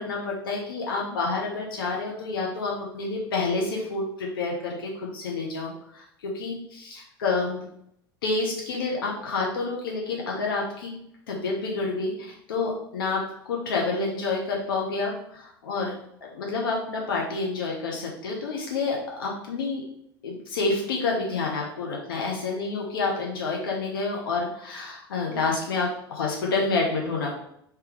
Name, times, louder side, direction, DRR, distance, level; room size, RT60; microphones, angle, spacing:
voice 1, 0.0-7.6 8.2-10.9 11.3-13.2 13.5-15.9 16.2-19.8 20.2-27.4, left 3 dB, 65° left, -1 dB, 0.9 m, -28 dB
3.4 x 3.1 x 4.6 m, 0.73 s
figure-of-eight pair, 75°, 13 cm